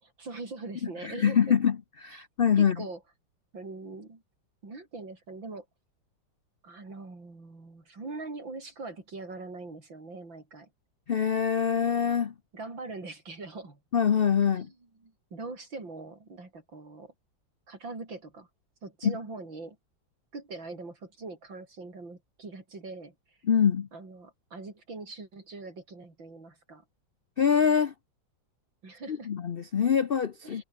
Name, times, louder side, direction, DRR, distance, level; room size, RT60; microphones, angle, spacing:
voice 1, 0.0-1.6 2.1-2.2 2.6-3.0 3.5-4.2 4.6-5.7 6.6-10.7 12.5-13.8 14.5-17.1 17.7-18.5 18.8-19.8 20.3-23.1 23.9-26.8 28.8-29.3 30.4-30.6, right 3 dB, 80° right, 6.1 m, -42 dB
voice 2, 1.0-1.8 2.0-2.8 11.1-12.3 13.9-14.7 19.0-19.1 23.5-23.9 27.4-27.9 29.1-30.6, left 7 dB, 85° left, 0.5 m, -24 dB
omnidirectional pair, 2.1 m